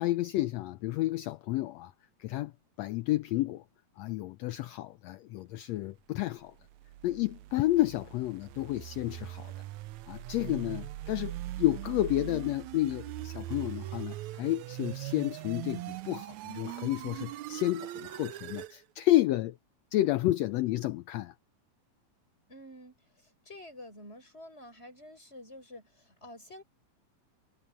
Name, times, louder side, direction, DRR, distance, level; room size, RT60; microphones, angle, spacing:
voice 1, 0.0-1.9 2.2-2.5 2.8-3.6 4.0-6.5 7.0-9.5 10.1-19.6 19.9-21.3, left 16 dB, 75° left, 1.7 m, -30 dB
sound 1, 6.6-18.8, right 16 dB, 85° right, 2.0 m, -41 dB
voice 2, 22.5-23.0 23.5-26.6, left 1 dB, 20° left, 7.5 m, -49 dB
omnidirectional pair, 3.3 m